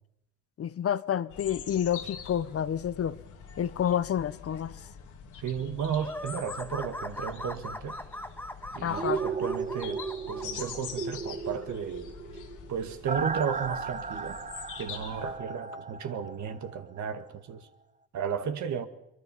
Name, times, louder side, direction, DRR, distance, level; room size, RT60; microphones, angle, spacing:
voice 1, 0.6-3.2 3.6-4.7 8.8-9.2, left 9 dB, 50° left, 0.8 m, -29 dB
sound 1, 1.3-15.4, left 7 dB, 80° left, 2.8 m, -45 dB
voice 2, 5.3-8.0 8.7-12.1 12.7-14.4 14.8-17.7 18.1-18.9, right 7 dB, 70° right, 2.0 m, -34 dB
sound 2, 6.0-10.8, left 1 dB, 5° left, 1.3 m, -40 dB
sound 3, 8.9-16.8 17.2-17.3, right 5 dB, 25° right, 0.9 m, -35 dB
23.5 x 23.0 x 5.6 m
cardioid pair, 90°, 30 cm